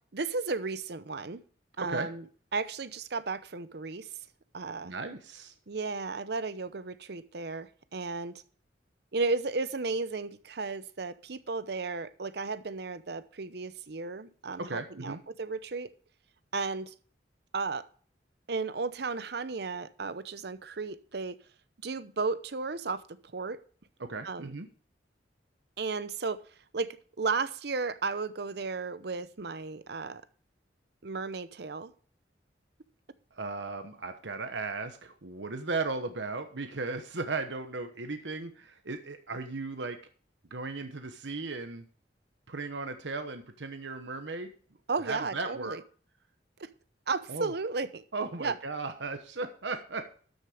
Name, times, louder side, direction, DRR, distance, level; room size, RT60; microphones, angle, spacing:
voice 1, 0.1-1.4 1.8-2.2 2.5-4.1 4.5-4.9 5.7-8.3 9.1-15.9 16.5-16.9 17.5-17.8 18.5-21.4 21.8-23.0 23.3-23.6 24.2-24.5 25.8-26.4 26.7-30.2 31.0-31.9 44.9-45.8 46.6-46.7 47.1-48.0 48.4-48.6, right 4 dB, 65° right, 14 dB, 0.8 m, -34 dB
voice 2, 4.8-5.5 14.6-15.2 24.0-24.7 33.3-40.0 40.5-41.9 42.5-44.5 45.0-45.8 47.3-47.5 48.1-50.0, right 3 dB, 80° right, 8 dB, 1.1 m, -36 dB
13.0 x 6.7 x 4.9 m, 0.43 s
head